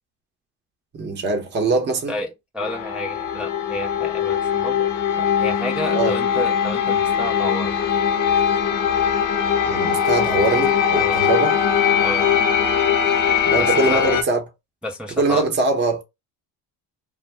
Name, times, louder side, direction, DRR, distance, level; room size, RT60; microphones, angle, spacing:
voice 1, 0.9-2.2 5.9-6.2 9.6-11.6 13.5-14.4 15.2-16.0, right 3 dB, 25° right, 0.7 m, -22 dB
voice 2, 2.5-4.9 5.2-7.8 10.9-11.2 12.0-12.3 13.6-14.0 14.8-15.4, left 1 dB, 5° right, 0.3 m, -30 dB
sound 1, 2.6-14.2, left 8 dB, 50° left, 0.6 m, -20 dB
2.6 x 2.0 x 3.1 m
cardioid pair, 135°, 42 cm